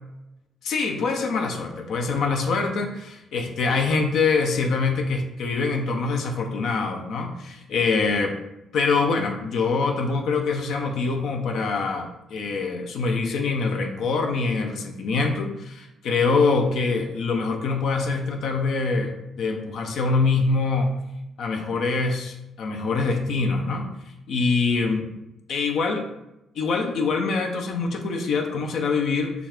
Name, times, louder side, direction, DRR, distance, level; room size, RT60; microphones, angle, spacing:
voice 1, 0.6-8.4 8.7-20.9 21.4-23.9 24.3-25.1 25.5-26.0 26.6-29.3, left 4 dB, 70° left, 3 dB, 0.7 m, -24 dB
5.9 x 2.5 x 3.5 m, 0.91 s
cardioid pair, 90°, 0 cm